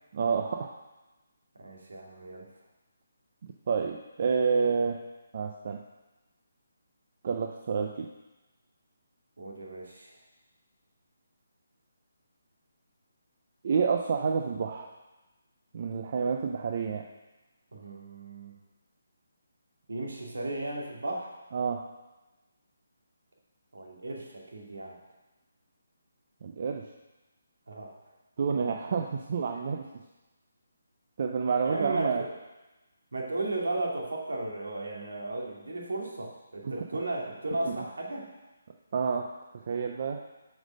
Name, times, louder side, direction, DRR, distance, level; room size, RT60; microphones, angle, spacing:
voice 1, 0.1-0.8 3.4-5.0 5.3-5.8 7.2-8.1 13.6-14.9 15.7-17.1 21.5-21.8 26.4-26.8 28.4-29.9 31.2-32.2 36.6-36.7 37.6-37.8 38.9-39.3 39.7-40.2, right 5 dB, 30° right, 3 dB, 0.4 m, -29 dB
voice 2, 1.6-2.5 9.4-10.2 17.7-18.5 19.9-21.4 23.7-25.0 27.7-27.9 28.7-28.8 31.6-32.3 33.1-38.3, right 2 dB, 85° right, -2 dB, 2.3 m, -35 dB
7.9 x 5.3 x 6.3 m, 1.1 s
hypercardioid pair, 180°, 0 cm